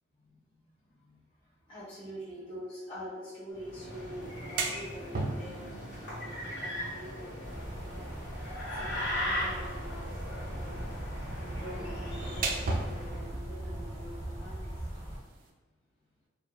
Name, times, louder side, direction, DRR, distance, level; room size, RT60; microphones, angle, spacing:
voice 1, 1.7-10.1 10.5-10.9 11.4-14.7, equal, 30° left, -11 dB, 1.2 m, -45 dB
sound 1, 3.6-13.3, left 1 dB, 80° left, 1.3 m, -38 dB
sound 2, 4.2-15.5, right 3 dB, 50° right, 0.4 m, -40 dB
sound 3, 7.4-15.2, right 1 dB, 15° right, 0.7 m, -40 dB
2.8 x 2.3 x 2.2 m, 1.2 s
head